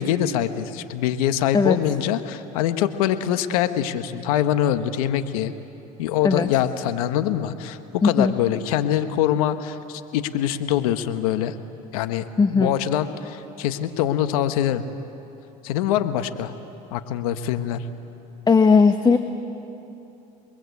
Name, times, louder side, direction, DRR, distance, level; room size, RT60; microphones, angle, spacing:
voice 1, 0.0-5.5 6.0-11.5 11.9-14.9 15.6-16.5 16.9-17.8, left 11 dB, 85° left, 10 dB, 1.3 m, -24 dB
voice 2, 8.0-8.3 12.4-12.7 18.5-19.2, left 5 dB, 20° left, 8 dB, 1.1 m, -17 dB
30.0 x 21.5 x 8.4 m, 2.9 s
supercardioid pair, 95°, 18 cm